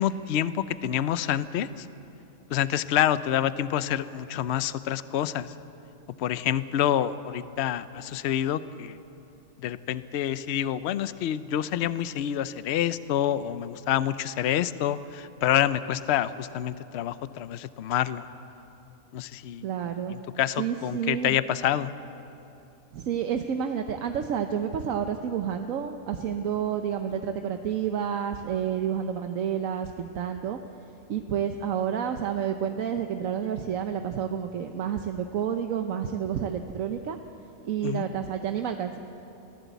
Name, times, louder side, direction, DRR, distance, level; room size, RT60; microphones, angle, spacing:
voice 1, 0.0-1.9 2.5-5.5 6.2-9.0 9.6-18.3 19.1-19.7 20.1-21.9 37.8-38.1, left 11 dB, 60° left, 14 dB, 0.8 m, -27 dB
voice 2, 19.6-20.1 20.6-21.4 22.9-30.6 31.1-37.2 37.6-39.0, right 8 dB, 75° right, 6 dB, 1.2 m, -29 dB
23.5 x 15.5 x 8.1 m, 2.9 s
omnidirectional pair, 1.4 m